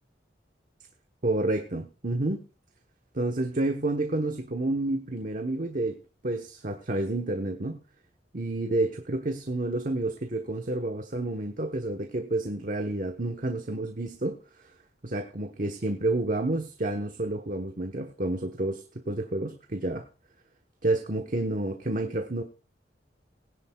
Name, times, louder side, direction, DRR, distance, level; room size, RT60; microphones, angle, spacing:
voice 1, 1.2-2.4 3.1-7.8 8.3-14.7 15.0-20.1 20.8-22.4, right 2 dB, 45° right, 1.1 m, -29 dB
20.0 x 11.0 x 2.3 m
head